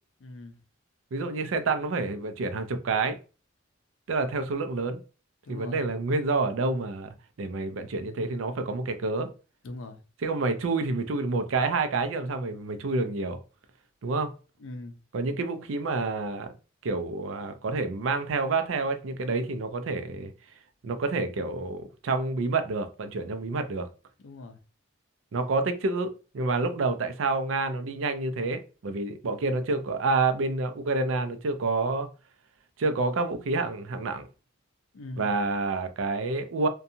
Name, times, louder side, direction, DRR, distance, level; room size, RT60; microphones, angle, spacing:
voice 1, 0.2-0.6 5.4-5.8 9.6-10.0 14.6-15.0 24.2-24.6 34.9-35.3, left 2 dB, 75° left, 0.5 m, -41 dB
voice 2, 1.1-3.2 4.1-5.0 5.5-9.3 10.2-13.4 14.0-14.3 15.1-16.5 16.8-20.3 20.8-23.9 25.3-32.1 32.8-34.3 35.2-36.7, right 3 dB, 80° right, 0.4 m, -28 dB
2.6 x 2.2 x 2.7 m
head